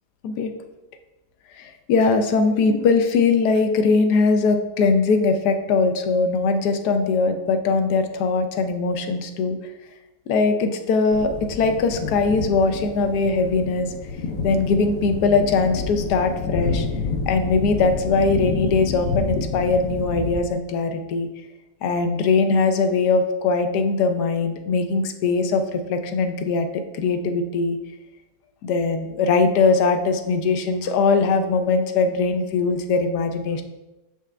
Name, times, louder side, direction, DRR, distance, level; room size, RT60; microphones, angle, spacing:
voice 1, 1.6-9.6 10.3-13.9 14.4-16.9 17.3-21.3 21.8-27.8 28.6-33.6, left 4 dB, 90° left, 7 dB, 1.2 m, -21 dB
sound 1, 11.1-20.4, left 4 dB, 65° left, 1.0 m, -29 dB
6.6 x 4.9 x 3.3 m, 1.1 s
omnidirectional pair, 1.7 m